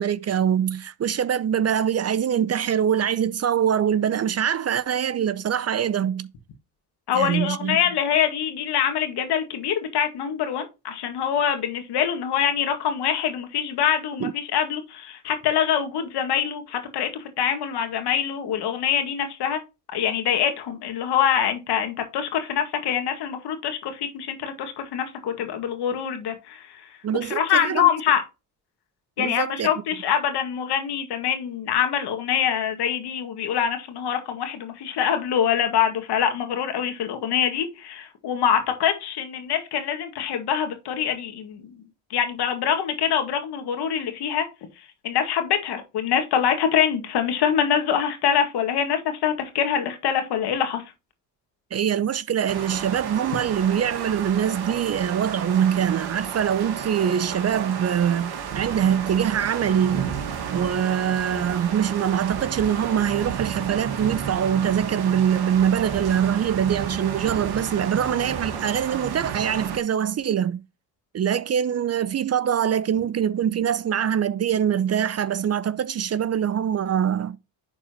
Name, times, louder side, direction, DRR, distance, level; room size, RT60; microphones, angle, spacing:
voice 1, 0.0-6.3 7.1-7.8 14.2-14.3 27.0-27.9 29.2-29.7 51.7-60.1 60.5-70.6 71.1-77.4, right 9 dB, 35° right, 0.6 m, -23 dB
voice 2, 7.1-19.6 19.9-26.8 27.2-28.2 29.2-41.7 42.1-44.4 45.0-50.8, left 8 dB, 70° left, 2.0 m, -24 dB
sound 1, 52.5-69.8, right 7 dB, 65° right, 1.7 m, -32 dB
10.5 x 4.3 x 2.9 m
supercardioid pair, 70°, 42 cm